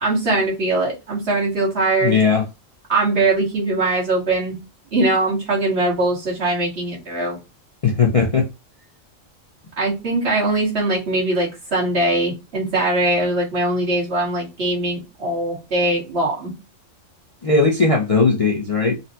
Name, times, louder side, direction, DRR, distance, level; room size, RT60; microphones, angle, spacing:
voice 1, 0.0-2.1 2.9-4.5 4.9-7.4 9.8-16.5, right 2 dB, 50° right, 1.7 m, -21 dB
voice 2, 2.0-2.4 7.8-8.5 17.4-18.9, left 4 dB, 40° left, 0.5 m, -17 dB
4.0 x 2.2 x 2.7 m
omnidirectional pair, 1.3 m